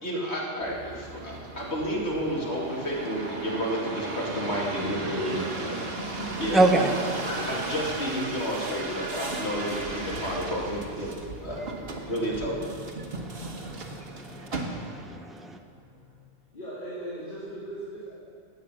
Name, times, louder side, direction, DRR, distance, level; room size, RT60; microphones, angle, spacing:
voice 1, 0.0-5.3 5.9-11.1 11.4-12.6, equal, 60° left, -3 dB, 2.7 m, -31 dB
sound 1, 0.6-15.2 15.7-16.3, right 2 dB, 55° right, 1.5 m, -36 dB
voice 2, 4.8-5.8 16.5-18.1, right 1 dB, 45° left, -10 dB, 3.4 m, -37 dB
voice 3, 6.5-6.9 13.2-15.6, right 2 dB, ahead, 4 dB, 0.6 m, -27 dB
15.5 x 9.2 x 6.2 m, 2.2 s
omnidirectional pair, 1.2 m